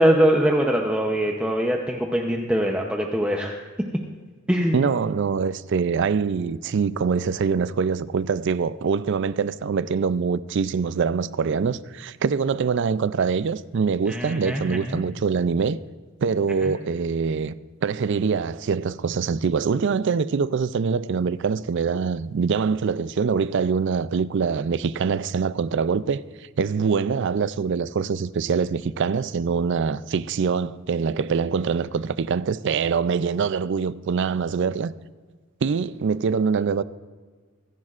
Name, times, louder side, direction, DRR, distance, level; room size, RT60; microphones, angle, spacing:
voice 1, 0.0-3.6 4.5-4.8 14.1-15.0 16.6-16.7, right 1 dB, 5° right, 0.7 m, -22 dB
voice 2, 4.7-15.8 16.2-17.5 17.8-26.2 26.6-34.9 35.6-36.8, right 5 dB, 55° right, 0.4 m, -24 dB
25.5 x 10.5 x 2.5 m
head